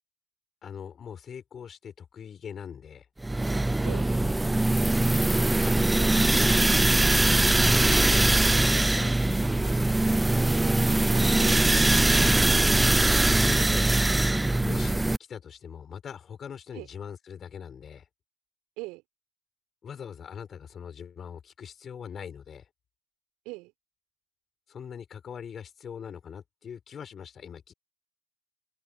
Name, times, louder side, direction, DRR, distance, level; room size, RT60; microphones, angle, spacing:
voice 1, 0.6-3.1 3.8-4.3 4.6-4.9 6.1-9.9 12.4-12.7 13.4-13.9 14.6-15.0 15.3-18.0 19.8-22.7 24.7-27.7, left 7 dB, 30° left, 6.3 m, -42 dB
sound 1, 3.2-15.2, right 2 dB, 10° right, 0.5 m, -22 dB
voice 2, 9.4-9.8 10.8-12.0 16.7-16.9 18.8-19.0 23.4-23.7, right 24 dB, 55° right, 6.5 m, -42 dB
open air
hypercardioid pair, 90°, 0 cm